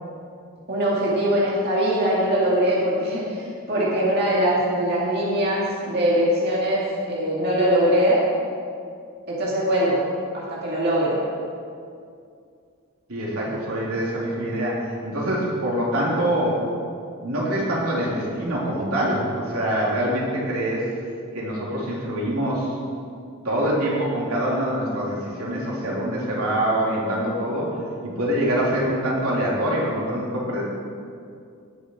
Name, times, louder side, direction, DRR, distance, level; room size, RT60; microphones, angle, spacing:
voice 1, 0.7-8.2 9.3-10.0 10.3-11.2 13.4-13.6, equal, 45° right, -6 dB, 2.3 m, -22 dB
voice 2, 13.1-16.6 17.2-20.9 21.3-22.8 23.4-27.7 28.0-30.6, right 1 dB, 90° right, -5 dB, 3.4 m, -24 dB
19.0 x 6.7 x 4.7 m, 2.3 s
head